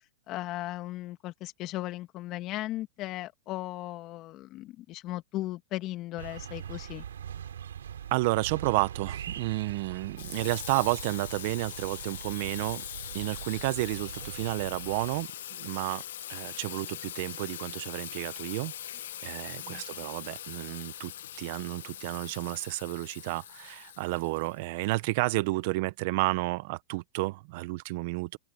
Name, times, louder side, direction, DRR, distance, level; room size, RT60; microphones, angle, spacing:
voice 1, 0.3-7.0 19.6-19.8, left 16 dB, 40° left, 2.4 m, -37 dB
sound 1, 6.2-15.2, right 9 dB, 85° right, 4.6 m, -42 dB
voice 2, 8.1-12.8 13.1-16.0 16.3-18.7 19.2-21.1 21.4-28.4, right 21 dB, 55° right, 1.3 m, -31 dB
Water tap faucet / Sink (filling or washing), 10.2-24.9, left 11 dB, 75° left, 1.9 m, -42 dB
open air
hypercardioid pair, 125°, 0 cm